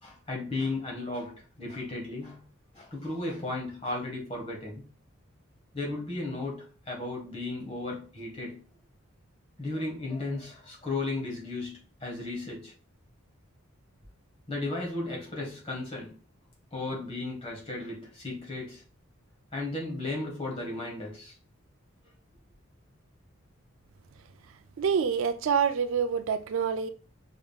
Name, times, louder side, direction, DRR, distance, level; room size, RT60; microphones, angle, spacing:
voice 1, 0.0-2.4 2.7-4.8 5.7-8.6 9.6-12.7 14.5-16.1 16.7-18.8 19.5-21.3, left 2 dB, 25° left, 1.5 m, -35 dB
voice 2, 24.8-26.9, right 6 dB, 65° right, 0.3 m, -26 dB
4.7 x 3.4 x 2.3 m
head